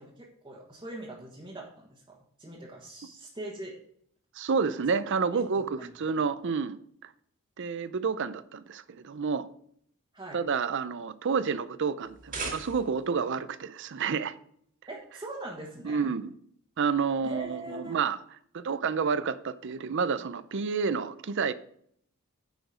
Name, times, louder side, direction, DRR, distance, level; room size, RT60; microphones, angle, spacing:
voice 1, 0.0-3.7 5.3-5.9 6.2-6.3 10.1-10.4 14.9-16.1 17.2-18.0, right 1 dB, 20° right, 1.5 m, -42 dB
voice 2, 4.4-6.8 7.0-7.1 7.6-9.5 10.3-14.4 15.8-16.3 16.8-18.2 18.5-21.5, right 5 dB, 55° right, 0.5 m, -29 dB
sound 1, 12.0-13.2, right 4 dB, 40° right, 1.8 m, -38 dB
10.0 x 5.1 x 4.9 m
head